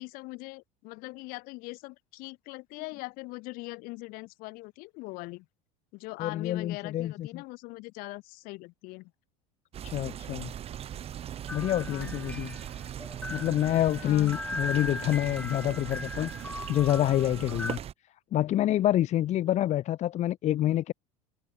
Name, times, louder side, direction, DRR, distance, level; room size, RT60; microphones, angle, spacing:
voice 1, 0.0-5.5 5.9-9.1 11.9-12.2 14.0-14.3, left 24 dB, 65° left, 2.3 m, -41 dB
voice 2, 6.2-7.4 9.8-10.5 11.5-12.5 13.3-17.8 18.3-20.9, left 13 dB, 45° left, 1.2 m, -27 dB
sound 1, 9.7-17.9, right 10 dB, 40° right, 1.2 m, -39 dB
sound 2, 11.5-17.8, left 2 dB, 10° left, 1.9 m, -39 dB
supercardioid pair, 95°, 16 cm